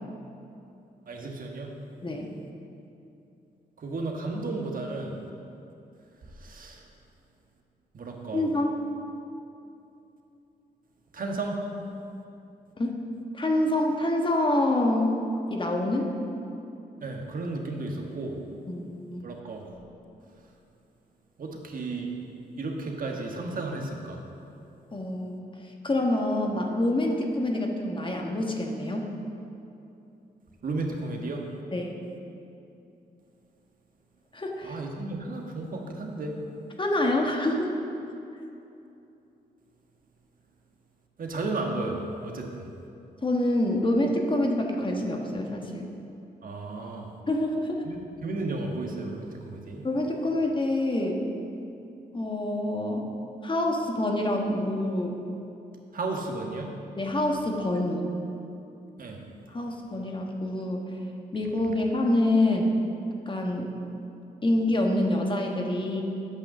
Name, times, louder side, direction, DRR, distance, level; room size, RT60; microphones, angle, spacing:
voice 1, 1.1-1.8 3.8-5.2 6.3-6.9 7.9-8.4 11.1-11.6 17.0-18.4 19.2-19.7 21.4-22.1 22.6-24.2 30.6-31.5 34.6-36.4 41.2-42.5 46.4-47.1 47.8-49.9 55.9-56.8 59.0-59.2, right 2 dB, 55° right, 1 dB, 1.5 m, -33 dB
voice 2, 2.0-2.3 8.3-8.8 12.8-13.0 13.3-15.2 15.5-16.1 18.7-19.3 24.9-25.5 25.8-29.1 31.7-32.0 34.3-34.7 36.8-37.7 43.2-45.9 47.3-47.8 49.8-51.2 52.1-53.1 53.4-55.2 57.0-58.1 59.5-61.0 61.3-62.7 63.3-63.7 64.4-66.0, left 1 dB, 30° left, 1 dB, 1.3 m, -26 dB
8.5 x 5.9 x 7.0 m, 2.8 s
cardioid pair, 65°, 17 cm